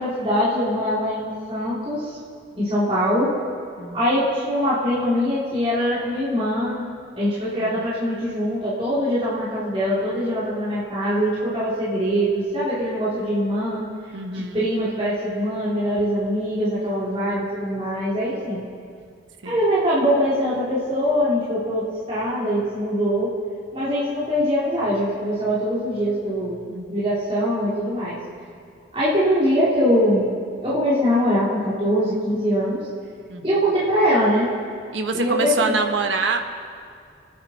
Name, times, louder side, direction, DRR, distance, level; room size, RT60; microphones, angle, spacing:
voice 1, 0.0-2.2 2.5-3.3 3.9-13.8 14.3-18.6 19.4-23.3 23.7-26.6 26.9-28.2 28.9-30.3 30.6-32.9 33.4-34.5 35.1-35.8, equal, 30° right, -10 dB, 2.8 m, -22 dB
voice 2, 14.1-14.6 19.4-19.6 26.7-27.1 33.3-33.5 34.9-36.4, right 4 dB, 85° right, 5 dB, 1.1 m, -26 dB
26.5 x 9.6 x 4.1 m, 2.3 s
head